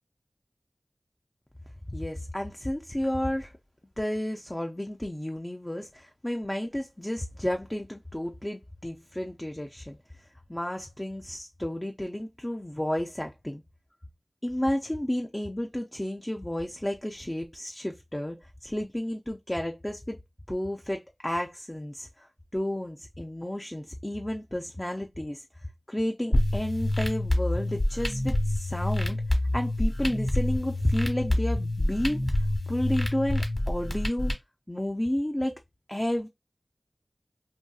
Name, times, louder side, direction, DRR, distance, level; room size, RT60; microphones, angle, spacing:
voice 1, 1.9-3.5 4.0-10.0 10.5-13.6 14.4-20.2 20.5-25.4 25.9-29.2 29.5-34.3 34.7-35.5 35.9-36.3, left 1 dB, 20° left, 0.4 m, -32 dB
sound 1, 26.3-34.3, left 1 dB, 35° left, 1.1 m, -27 dB
2.7 x 2.6 x 2.3 m
wide cardioid pair, 45°, 0 cm